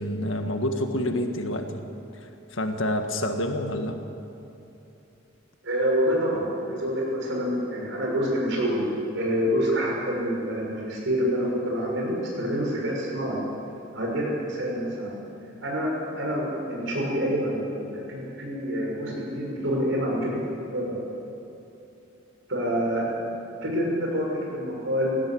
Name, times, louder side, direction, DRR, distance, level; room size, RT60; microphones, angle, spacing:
voice 1, 0.0-1.9 2.1-4.0, left 1 dB, 75° left, 5 dB, 1.7 m, -28 dB
voice 2, 5.6-8.8 9.1-13.4 13.9-15.1 15.6-20.4 20.7-21.0 22.5-23.1 23.6-25.2, equal, 65° right, -2 dB, 6.7 m, -27 dB
20.0 x 16.0 x 8.6 m, 2.9 s
head